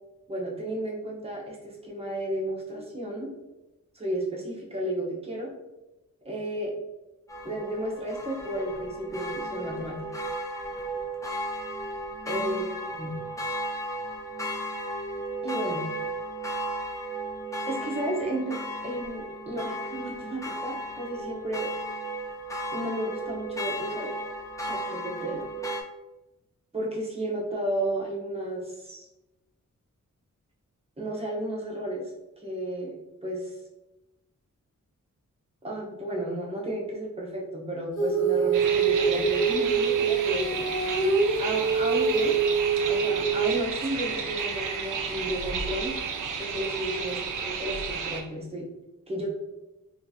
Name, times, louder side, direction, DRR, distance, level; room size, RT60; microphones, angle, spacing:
voice 1, 0.3-3.3 3.9-5.5 6.2-6.7 7.4-10.0 12.3-12.6 12.9-13.2 15.4-15.9 17.7-21.7 22.7-24.1 24.6-25.4 26.7-29.1 31.0-32.1 32.4-33.0 33.2-33.5 35.6-40.9 41.4-42.4 42.9-45.9 46.4-48.7 49.1-49.4, right 1 dB, 20° right, -3 dB, 0.8 m, -33 dB
sound 1, 7.3-25.8, right 1 dB, 10° left, 0.4 m, -35 dB
Female singing, 38.0-43.7, right 5 dB, 65° left, 1.4 m, -25 dB
sound 2, 38.5-48.2, right 5 dB, 75° right, 0.5 m, -32 dB
3.6 x 2.5 x 2.7 m, 0.99 s
wide cardioid pair, 165°, 31 cm